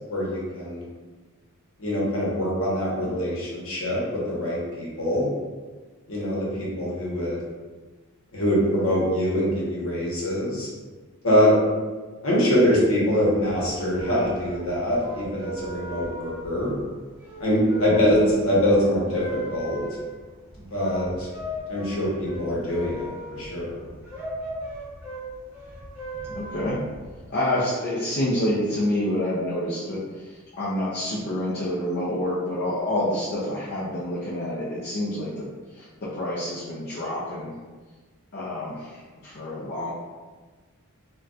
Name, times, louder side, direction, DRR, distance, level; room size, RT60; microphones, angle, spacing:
voice 1, 0.1-0.8 1.8-4.0 4.3-5.3 6.1-7.4 8.3-10.7 11.2-11.5 12.2-16.7 17.4-19.2 19.5-19.8 20.7-21.3 21.7-23.8, equal, 65° left, -6 dB, 1.0 m, -23 dB
sound 1, 13.3-27.2, right 1 dB, 10° right, 1.0 m, -37 dB
voice 2, 26.3-26.8 27.3-35.5 35.8-37.5 38.3-39.0 39.2-39.9, left 1 dB, 45° left, -8 dB, 0.5 m, -28 dB
3.9 x 2.3 x 2.3 m, 1.3 s
head